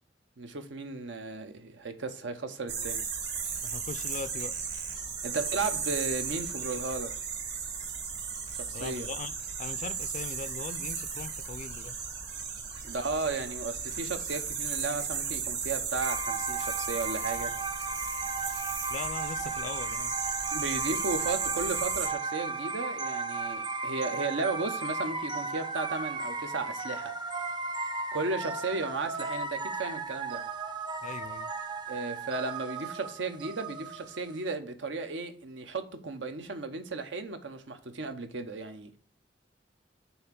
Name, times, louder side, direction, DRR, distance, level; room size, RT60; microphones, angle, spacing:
voice 1, 0.4-3.0 5.2-7.1 8.6-9.1 12.8-17.5 20.5-27.1 28.1-30.4 31.9-39.0, right 3 dB, 85° right, 0.8 m, -35 dB
sound 1, 2.7-22.1, right 6 dB, 65° right, 2.0 m, -35 dB
voice 2, 3.6-4.5 8.7-9.3 9.6-12.0 18.9-20.1 31.0-31.5, left 5 dB, 45° left, 0.4 m, -40 dB
sound 2, 16.0-34.4, right 3 dB, 25° right, 0.5 m, -35 dB
5.6 x 3.5 x 5.8 m
head